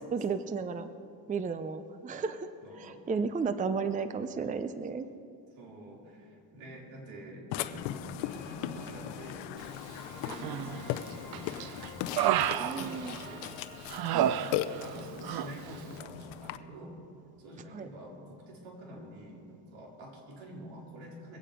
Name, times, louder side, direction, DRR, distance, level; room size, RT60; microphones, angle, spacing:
voice 1, 0.1-0.9 1.3-2.5 2.8-5.1 12.6-13.2 14.1-14.3 17.7-17.9, right 5 dB, 20° right, 11 dB, 0.5 m, -33 dB
voice 2, 2.6-3.0 5.6-9.5 10.2-11.6 12.3-13.5 14.4-17.0 17.4-21.4, equal, 80° right, -2 dB, 3.8 m, -47 dB
Burping eructation, 7.5-16.6, left 12 dB, 90° left, 0.7 m, -38 dB
sound 1, 8.2-13.8, right 1 dB, 40° right, 3.8 m, -51 dB
Human voice, 10.3-10.9 11.3-13.5 13.9-15.0 15.2-15.5, right 11 dB, 55° right, 0.7 m, -30 dB
22.0 x 8.7 x 5.0 m, 2.7 s
cardioid pair, 110°, 44 cm